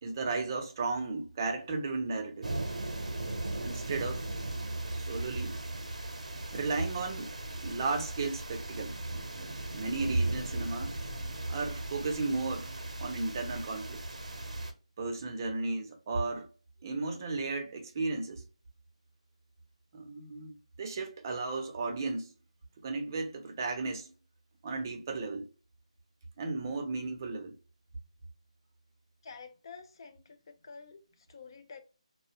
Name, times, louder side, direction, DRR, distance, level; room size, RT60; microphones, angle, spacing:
voice 1, 0.0-2.6 3.6-4.2 4.9-5.6 6.5-7.3 7.6-9.0 9.7-10.9 11.5-14.0 15.0-16.5 16.8-18.4 19.9-22.3 22.8-24.1 24.6-25.5 26.4-27.6, right 3 dB, 30° right, 0.5 m, -34 dB
sound 1, 2.4-14.7, right 2 dB, 75° right, 0.6 m, -38 dB
voice 2, 29.2-31.8, left 5 dB, 40° left, 0.4 m, -49 dB
2.2 x 2.1 x 2.8 m
figure-of-eight pair, 165°, 4 cm